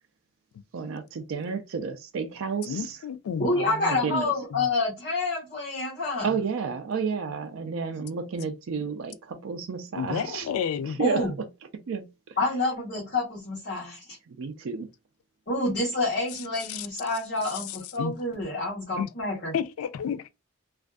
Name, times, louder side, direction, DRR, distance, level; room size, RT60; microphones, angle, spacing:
voice 1, 0.7-3.0 3.5-4.3 6.2-10.5 10.9-11.5 11.7-12.4 14.3-14.9, right 5 dB, 75° right, 0.4 m, -31 dB
voice 2, 2.6-3.5 4.5-4.7 10.0-11.0 16.7-16.9 17.5-18.1 19.0-20.3, left 7 dB, 90° left, 0.3 m, -31 dB
voice 3, 3.4-6.3 11.0-11.3 12.4-14.2 15.5-19.5, left 2 dB, 45° left, 0.9 m, -28 dB
2.5 x 2.3 x 2.2 m
head